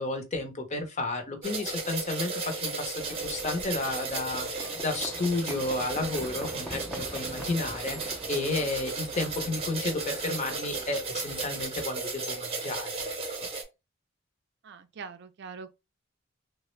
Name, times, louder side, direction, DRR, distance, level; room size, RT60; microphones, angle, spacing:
voice 1, 0.0-13.2, left 2 dB, 35° left, 0.7 m, -32 dB
sound 1, 1.4-13.6, right 3 dB, 30° right, 0.7 m, -35 dB
Livestock farm animals working animals, 3.0-11.6, equal, ahead, 0.5 m, -44 dB
voice 2, 14.6-15.7, right 5 dB, 55° right, 0.4 m, -43 dB
3.3 x 2.1 x 3.1 m
head